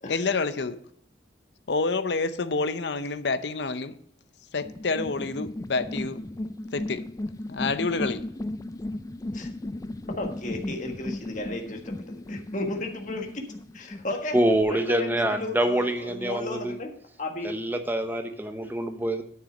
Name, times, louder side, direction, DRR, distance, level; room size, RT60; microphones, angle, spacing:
voice 1, 0.1-0.8 1.7-3.9 4.5-6.2 6.7-7.0 7.5-8.2, left 3 dB, 70° left, 12 dB, 0.7 m, -28 dB
sound 1, 4.6-14.6, left 1 dB, 20° left, 0.3 m, -36 dB
voice 2, 10.2-13.4 13.7-14.4 14.7-16.9 17.2-17.5, left 2 dB, 45° left, 3 dB, 1.5 m, -34 dB
voice 3, 14.3-16.8 17.4-19.2, right 1 dB, 10° right, 7 dB, 0.8 m, -25 dB
9.7 x 6.7 x 5.0 m, 0.68 s
head